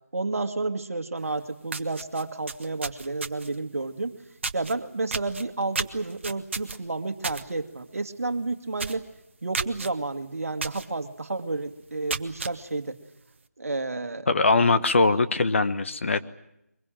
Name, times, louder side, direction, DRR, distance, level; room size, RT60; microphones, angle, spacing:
voice 1, 0.1-4.1 4.5-9.1 9.4-13.0 13.6-14.3, right 3 dB, 60° right, 8 dB, 1.9 m, -31 dB
sound 1, 1.3-1.4 1.7-3.6 4.4-4.7 5.1-7.4 7.8-8.0 8.3-8.4 8.8-9.1 9.5-9.9 10.6-10.9 11.3-11.4 11.9-12.5, right 4 dB, 45° right, 1.3 m, -32 dB
voice 2, 14.3-16.2, left 3 dB, 50° left, 10 dB, 1.2 m, -21 dB
23.0 x 22.5 x 9.0 m, 0.82 s
figure-of-eight pair, 165°, 9 cm